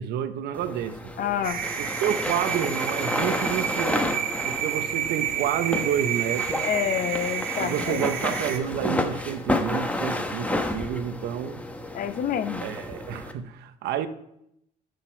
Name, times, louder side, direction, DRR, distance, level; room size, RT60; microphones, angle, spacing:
voice 1, 0.0-1.0 1.8-4.2 4.4-6.7 7.6-11.6 12.6-14.1, right 9 dB, 80° right, 0.9 m, -29 dB
sound 1, 0.5-13.3, left 1 dB, 10° left, 1.1 m, -31 dB
voice 2, 1.2-1.6 6.6-8.0 11.9-12.7, left 9 dB, 55° left, 0.8 m, -28 dB
sound 2, 1.4-8.6, right 10 dB, 60° right, 1.3 m, -30 dB
11.5 x 6.7 x 4.5 m
cardioid pair, 110°, 17 cm